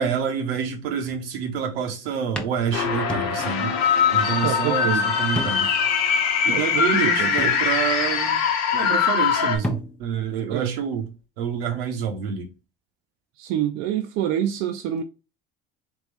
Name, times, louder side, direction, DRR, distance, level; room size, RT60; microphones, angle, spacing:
voice 1, 0.0-3.8 4.1-5.7 6.4-8.4 8.7-11.1 11.4-12.5, right 7 dB, 80° right, 0.9 m, -27 dB
sound 1, 1.5-1.8 2.4-3.8 4.1-4.2 5.4-5.9 6.3-6.4 7.4-8.1 9.3-9.4 9.6-10.3, left 1 dB, 5° left, 0.7 m, -33 dB
sound 2, 2.7-9.6, left 7 dB, 65° left, 1.0 m, -22 dB
voice 2, 4.4-5.1 6.5-7.6 10.5-10.8 13.4-15.0, right 10 dB, 60° right, 0.5 m, -26 dB
3.7 x 3.0 x 3.1 m
hypercardioid pair, 70°, 29 cm